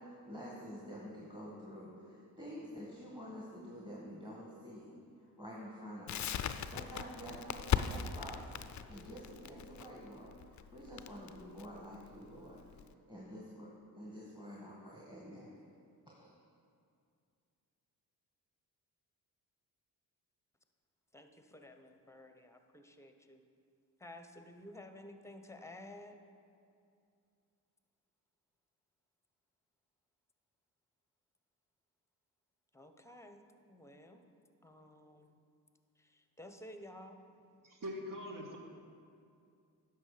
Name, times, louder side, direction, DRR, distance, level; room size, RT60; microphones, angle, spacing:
voice 1, 0.0-5.0 5.4-12.8 13.1-15.5 16.1-16.3, equal, 10° right, -4 dB, 1.8 m, -48 dB
Crackle, 6.1-12.9, left 9 dB, 45° left, 0.5 m, -38 dB
voice 2, 21.1-23.4 24.0-26.2 32.7-33.4 33.7-34.2 34.6-35.4 36.1-37.2, left 1 dB, 5° left, 6 dB, 0.9 m, -53 dB
voice 3, 37.6-38.6, equal, 50° right, 0 dB, 1.8 m, -42 dB
10.0 x 6.3 x 5.0 m, 2.4 s
supercardioid pair, 55°, 42 cm